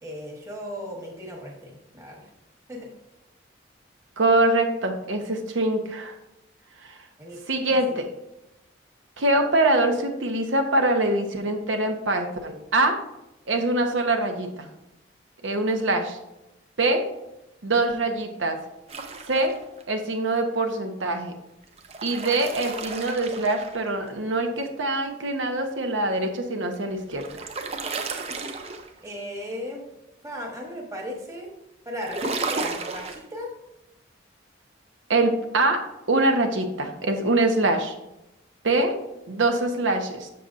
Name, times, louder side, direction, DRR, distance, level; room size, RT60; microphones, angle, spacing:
voice 1, 0.0-2.3 2.7-2.9 7.2-8.0 29.0-29.8 30.2-31.5 31.8-33.5, equal, 15° right, -1 dB, 1.3 m, -36 dB
voice 2, 4.2-6.1 6.8-7.0 7.5-8.0 9.2-13.0 13.5-14.7 15.4-16.2 16.8-17.0 17.6-18.6 19.3-19.5 19.9-21.3 22.0-27.2 35.1-35.8 36.1-37.9 38.6-38.9 39.3-40.3, right 2 dB, 80° right, 5 dB, 0.9 m, -24 dB
sound 1, 18.9-19.8 21.6-24.1 26.7-29.1 32.0-33.2, right 4 dB, 30° right, 0.5 m, -33 dB
6.9 x 6.7 x 2.5 m, 0.91 s
head